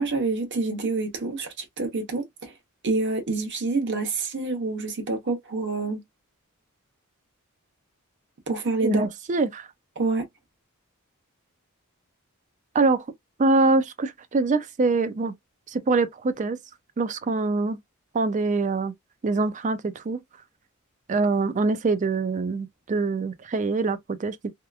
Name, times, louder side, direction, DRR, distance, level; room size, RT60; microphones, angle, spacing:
voice 1, 0.0-2.5 2.8-6.0 8.5-9.1 10.0-10.3, right 3 dB, 55° right, 1.0 m, -27 dB
voice 2, 8.8-9.7 12.7-13.0 13.4-15.3 15.7-16.6 17.0-17.8 18.1-18.9 19.2-20.2 21.1-24.4, right 3 dB, 35° right, 0.4 m, -24 dB
2.8 x 2.3 x 2.3 m
head